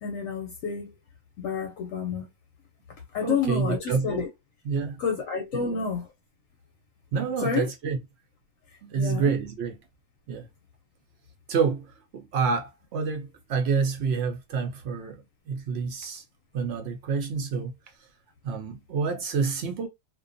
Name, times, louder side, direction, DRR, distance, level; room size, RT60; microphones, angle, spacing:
voice 1, 0.0-1.0 1.4-2.3 3.1-4.3 5.0-6.1 7.4-7.7 9.0-9.3, left 5 dB, 70° left, 0.9 m, -29 dB
voice 2, 3.2-4.2 4.7-5.0 5.5-5.9 7.1-8.0 8.8-9.8 10.3-10.5 11.5-11.9 12.1-15.2 15.5-16.2 16.5-17.7 18.4-19.9, right 5 dB, 65° right, 0.6 m, -28 dB
2.5 x 2.2 x 2.5 m
omnidirectional pair, 1.5 m